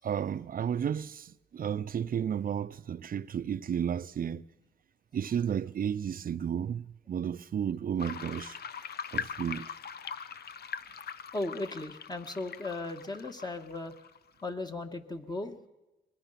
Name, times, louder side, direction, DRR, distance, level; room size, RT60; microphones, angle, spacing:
voice 1, 0.0-1.3 1.5-4.4 5.1-8.5 9.1-9.7, right 8 dB, 50° right, 0.6 m, -32 dB
sound 1, 8.0-14.4, left 7 dB, 60° left, 0.8 m, -41 dB
voice 2, 11.3-13.9 14.4-15.7, left 2 dB, 20° left, 1.7 m, -36 dB
23.5 x 21.5 x 5.8 m
cardioid pair, 85°, 19 cm